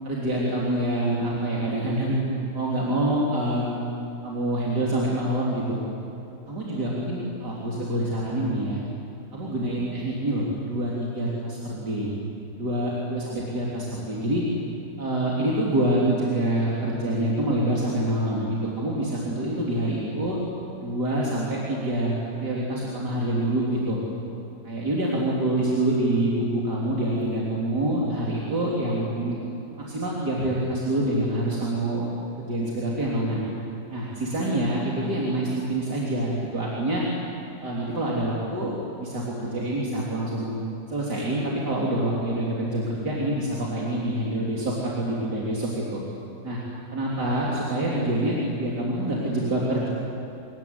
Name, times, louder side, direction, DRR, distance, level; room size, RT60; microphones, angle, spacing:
voice 1, 0.0-2.2 2.5-3.9 4.2-5.8 6.5-8.8 9.3-12.1 12.6-14.4 15.0-20.4 20.8-24.0 24.6-29.4 29.8-32.1 32.4-33.4 33.9-37.0 37.6-40.6 40.9-46.0 46.4-46.6 46.9-49.9, right 1 dB, 75° right, -5 dB, 4.0 m, -26 dB
26.5 x 22.0 x 9.7 m, 2.8 s
omnidirectional pair, 1.8 m